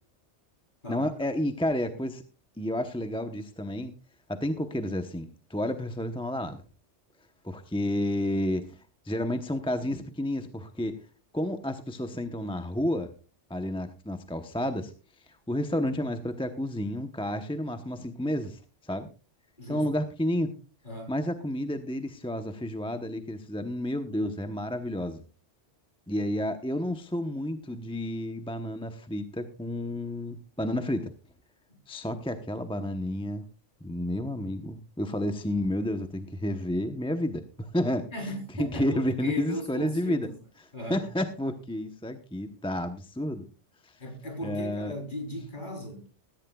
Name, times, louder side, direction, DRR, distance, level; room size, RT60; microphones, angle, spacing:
voice 1, 0.9-2.2 2.6-3.9 4.3-6.6 7.4-8.8 9.0-11.0 11.3-13.1 13.5-14.9 15.3-19.1 19.7-20.5 21.1-25.2 26.1-31.1 31.9-33.4 33.8-38.1 38.6-40.3 40.9-43.5 43.8-44.0 44.4-44.9, left 1 dB, 5° left, 0.8 m, -31 dB
voice 2, 19.6-19.9 20.8-21.2 38.1-40.3 40.7-41.0 44.0-46.1, left 1 dB, 40° left, 3.9 m, -37 dB
17.0 x 14.5 x 2.3 m
omnidirectional pair, 1.2 m